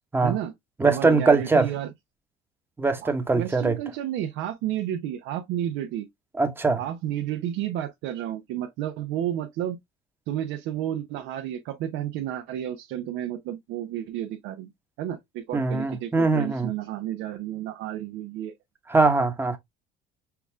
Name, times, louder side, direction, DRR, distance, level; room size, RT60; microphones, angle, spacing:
voice 1, 0.2-0.5 0.8-1.9 3.0-6.1 6.8-9.8 10.3-14.7 15.0-18.5, right 11 dB, 80° right, 0.8 m, -31 dB
voice 2, 0.8-1.7 2.8-3.8 6.4-6.8 15.5-16.7 18.9-19.6, right 3 dB, 10° right, 0.9 m, -22 dB
5.8 x 2.4 x 3.3 m
cardioid pair, 125°, 19 cm